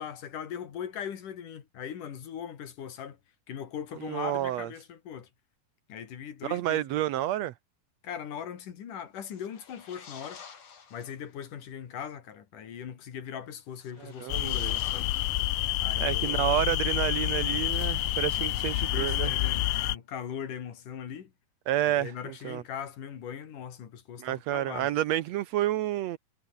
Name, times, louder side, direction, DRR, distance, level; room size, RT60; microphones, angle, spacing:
voice 1, 0.0-3.2 3.5-5.3 5.9-7.0 8.0-10.4 10.9-15.1 15.8-16.7 18.3-18.4 18.7-21.3 22.0-24.9, left 8 dB, 65° left, 3.9 m, -40 dB
voice 2, 4.1-4.7 6.4-7.5 14.2-14.7 16.0-19.3 21.7-22.6 24.2-26.2, right 13 dB, 85° right, 1.5 m, -29 dB
sound 1, 9.2-11.3 13.7-16.0, left 6 dB, 50° left, 4.0 m, -50 dB
sound 2, 14.3-20.0, left 16 dB, 85° left, 2.8 m, -28 dB
omnidirectional pair, 4.1 m